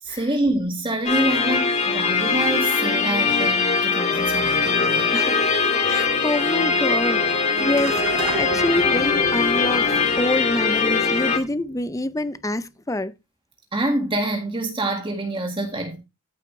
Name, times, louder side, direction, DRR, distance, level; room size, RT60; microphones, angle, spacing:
voice 1, 0.0-5.1 13.7-16.0, right 1 dB, 25° right, 1.8 m, -26 dB
sound 1, 1.0-11.4, left 4 dB, 35° left, 2.0 m, -21 dB
voice 2, 5.8-13.1, left 1 dB, 15° left, 0.6 m, -26 dB
sound 2, 7.8-12.4, right 2 dB, 85° right, 3.4 m, -35 dB
14.0 x 7.5 x 3.2 m
head